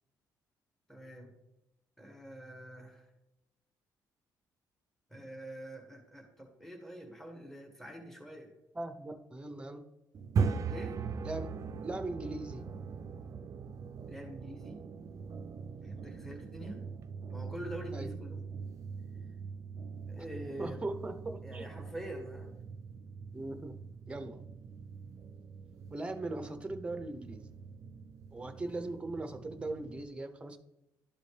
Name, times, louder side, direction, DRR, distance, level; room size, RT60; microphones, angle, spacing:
voice 1, 0.9-1.3 2.0-3.0 5.1-8.5 10.7-11.0 14.1-14.8 15.8-16.8 17.3-18.4 20.1-20.9 21.4-22.6, equal, 5° left, 2 dB, 1.3 m, -45 dB
voice 2, 8.7-9.8 11.2-12.7 17.9-18.1 20.2-20.3 20.6-21.7 23.3-23.7 24.1-24.4 25.9-27.4 28.3-30.6, right 2 dB, 15° right, 7 dB, 0.7 m, -39 dB
sound 1, 10.1-30.0, right 5 dB, 50° right, 0.4 m, -41 dB
12.0 x 4.1 x 3.3 m, 0.92 s
cardioid pair, 120°, 7 cm